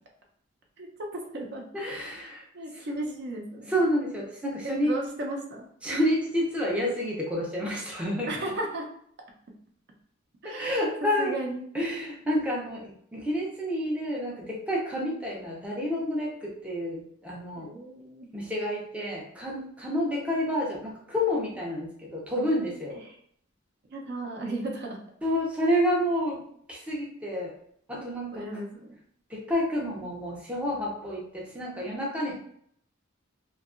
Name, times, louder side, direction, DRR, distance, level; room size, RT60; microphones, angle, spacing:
voice 1, 1.1-1.6 2.5-3.7 4.6-5.7 8.3-8.9 10.4-10.9 11.2-11.7 17.5-18.3 23.9-25.0 28.0-29.0, right 2 dB, 55° right, 1 dB, 0.5 m, -35 dB
voice 2, 1.7-2.4 2.7-3.2 3.7-5.0 5.8-8.5 10.4-11.4 11.7-17.7 18.3-23.0 25.2-27.6 27.9-28.6 29.3-32.4, equal, 5° right, -4 dB, 0.4 m, -29 dB
2.7 x 2.3 x 2.4 m, 0.65 s
head